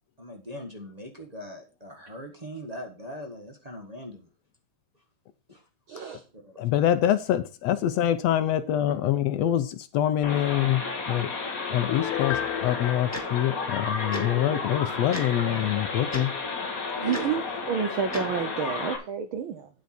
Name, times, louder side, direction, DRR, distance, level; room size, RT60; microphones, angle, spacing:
voice 1, 0.2-4.3 5.5-5.6 6.4-6.6 17.0-17.3, equal, 50° right, 0.4 m, -40 dB
voice 2, 5.9-6.2 17.0-19.7, right 7 dB, 75° right, 1.2 m, -30 dB
voice 3, 6.6-11.3 11.7-16.3, left 11 dB, 70° left, 1.8 m, -25 dB
sound 1, 10.2-19.0, left 4 dB, 35° left, 2.0 m, -32 dB
Piano, 11.9-14.6 15.0-15.1, left 12 dB, 90° left, 2.1 m, -35 dB
Tick-tock, 13.1-13.2 14.1-14.2 15.1-15.2 16.1-16.2 17.1-17.2 18.1-18.2, equal, 5° left, 1.3 m, -33 dB
9.4 x 8.2 x 4.3 m
omnidirectional pair, 3.3 m